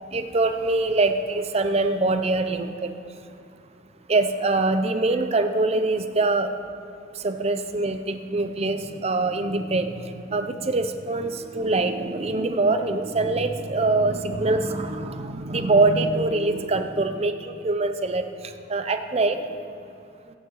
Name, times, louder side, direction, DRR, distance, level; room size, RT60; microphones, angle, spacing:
voice 1, 0.1-2.9 4.1-6.5 7.2-18.2 18.7-19.4, right 2 dB, 30° right, 8 dB, 0.6 m, -24 dB
21.5 x 9.1 x 3.1 m, 2.5 s
head